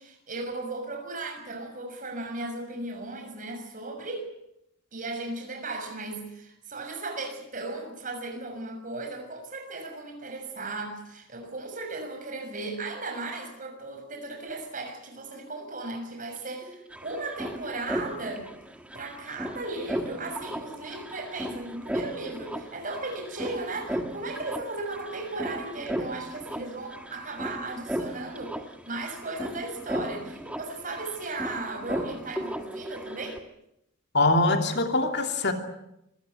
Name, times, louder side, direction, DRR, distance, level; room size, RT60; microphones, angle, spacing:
voice 1, 0.0-4.3 4.9-18.5 18.9-33.4, right 2 dB, 40° right, 5 dB, 6.5 m, -36 dB
sound 1, 16.4-16.5 16.6-33.4, equal, 5° right, 1.6 m, -36 dB
voice 2, 34.1-35.5, left 2 dB, 55° left, 5 dB, 2.9 m, -23 dB
26.0 x 16.5 x 9.4 m, 0.82 s
head